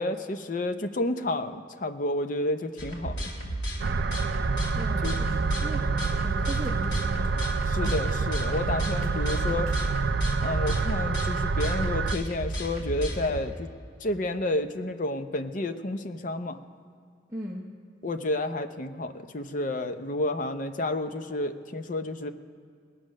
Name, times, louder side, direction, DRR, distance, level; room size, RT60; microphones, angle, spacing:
voice 1, 0.0-3.2 5.0-5.2 7.7-9.7 10.4-13.7 14.0-16.6 18.0-22.3, left 2 dB, 45° left, 8 dB, 0.6 m, -30 dB
sound 1, 2.8-13.4, right 1 dB, 85° left, 2.6 m, -33 dB
sound 2, 3.8-12.2, right 4 dB, 55° right, 0.4 m, -28 dB
voice 2, 4.7-7.5 8.9-9.0 17.3-17.7, equal, 15° right, -3 dB, 0.8 m, -38 dB
sound 3, 5.4-6.4 6.6-8.2 8.5-9.9, right 1 dB, 40° right, 2.2 m, -44 dB
19.5 x 7.7 x 6.3 m, 2.2 s
head